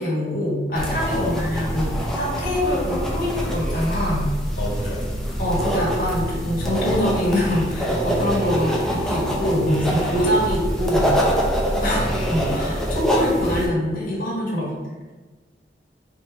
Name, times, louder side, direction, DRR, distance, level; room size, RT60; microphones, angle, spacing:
voice 1, 0.0-4.3 5.4-11.2 11.8-14.6, equal, 50° left, -6 dB, 1.3 m, -24 dB
sound 1, 0.8-13.7, equal, 5° left, 0.5 m, -25 dB
voice 2, 4.6-5.1 10.1-10.3 11.8-12.0 14.6-14.7, left 2 dB, 85° left, -6 dB, 1.1 m, -31 dB
3.3 x 2.8 x 4.1 m, 1.3 s
head